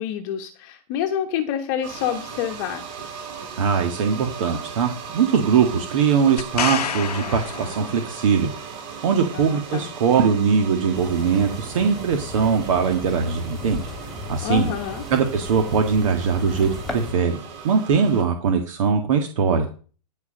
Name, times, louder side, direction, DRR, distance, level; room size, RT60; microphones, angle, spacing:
voice 1, 0.0-2.9 9.3-9.9 14.4-15.1, left 9 dB, 35° left, 6 dB, 1.2 m, -27 dB
sound 1, 1.8-18.2, right 6 dB, 35° right, 7.5 m, -38 dB
voice 2, 3.6-13.9 14.3-14.7 15.1-19.7, right 6 dB, 55° right, 5 dB, 1.8 m, -21 dB
sound 2, 6.4-8.4 12.0-12.1, left 9 dB, 75° left, 0.9 m, -29 dB
sound 3, 10.9-17.1, left 2 dB, ahead, 2.6 m, -36 dB
14.0 x 4.9 x 6.5 m, 0.39 s
hypercardioid pair, 135°, 20 cm